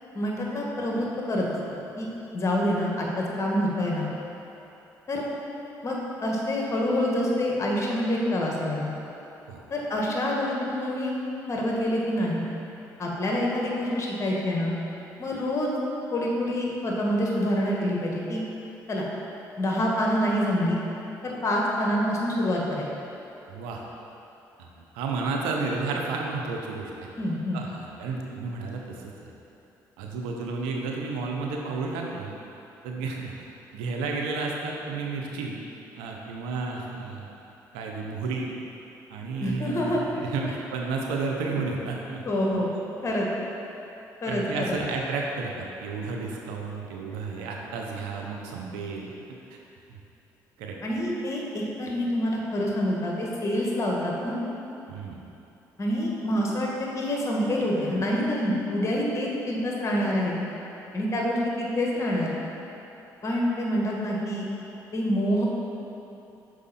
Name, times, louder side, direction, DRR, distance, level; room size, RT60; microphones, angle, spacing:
voice 1, 0.1-1.5 2.0-4.1 5.1-5.2 5.8-8.9 9.7-11.1 11.5-12.4 13.0-14.7 15.2-15.7 16.1-18.4 18.9-19.1 19.6-20.8 21.2-22.9 27.2-27.6 39.4-40.0 42.2-42.7 43.0-43.3 44.2-44.8 50.8-54.4 55.8-56.7 56.9-60.3 60.9-62.3 63.2-64.5 64.9-65.5, left 1 dB, 35° left, -3 dB, 1.5 m, -26 dB
voice 2, 23.5-23.8 24.6-24.7 24.9-26.9 27.5-29.3 30.0-32.3 32.8-33.3 33.7-35.6 36.0-37.3 37.7-38.5 39.1-42.2 44.3-49.1 49.9-50.0 50.6-50.7 54.9-55.2, right 4 dB, 85° right, 0 dB, 0.7 m, -32 dB
6.3 x 4.9 x 4.2 m, 2.9 s
supercardioid pair, 65°, 8 cm